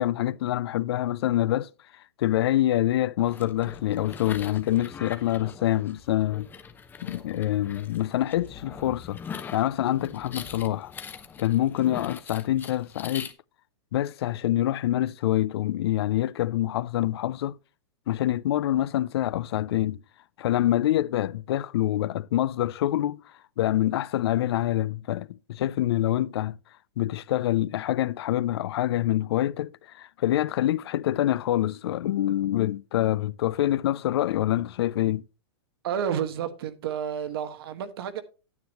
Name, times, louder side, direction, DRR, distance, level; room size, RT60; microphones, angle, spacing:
voice 1, 0.0-1.7 2.2-6.5 7.0-9.2 9.5-10.9 11.4-13.3 13.9-17.6 18.1-20.0 20.4-23.2 23.6-26.6 27.0-35.2, left 13 dB, 65° left, 0.5 m, -26 dB
sound 1, 3.2-13.3, left 6 dB, 15° left, 0.7 m, -42 dB
voice 2, 35.8-38.2, right 8 dB, 60° right, 1.3 m, -30 dB
9.4 x 9.3 x 3.0 m
hypercardioid pair, 145°, 14 cm